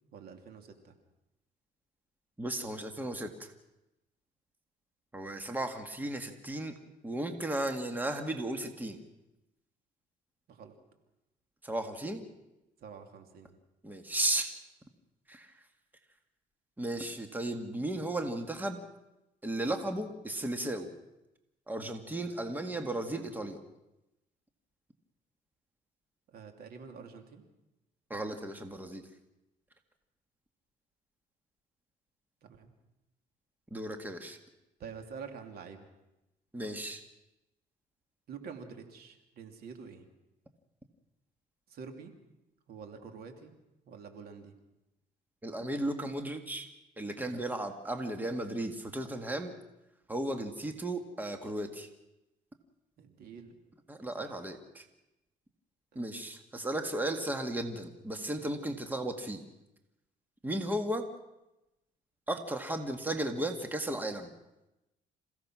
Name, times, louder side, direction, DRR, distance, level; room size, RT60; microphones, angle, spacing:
voice 1, 0.1-0.9 10.5-10.7 12.8-13.5 26.3-27.4 32.4-32.7 34.8-35.9 38.3-40.1 41.7-42.1 42.7-43.5 43.9-44.5 53.0-53.6 54.2-54.3 55.9-56.0, right 6 dB, 65° right, 5 dB, 2.8 m, -47 dB
voice 2, 2.4-3.5 5.1-6.7 7.0-9.0 11.6-12.2 13.8-14.5 15.3-15.5 16.8-18.8 19.4-20.9 21.7-23.6 28.1-29.0 33.7-34.4 36.5-37.0 45.4-46.7 47.0-49.5 50.1-51.9 53.9-54.9 56.0-59.4 60.4-61.1 62.3-64.3, right 1 dB, 10° right, 6 dB, 1.8 m, -35 dB
27.5 x 16.0 x 6.2 m, 0.95 s
cardioid pair, 110°, 17 cm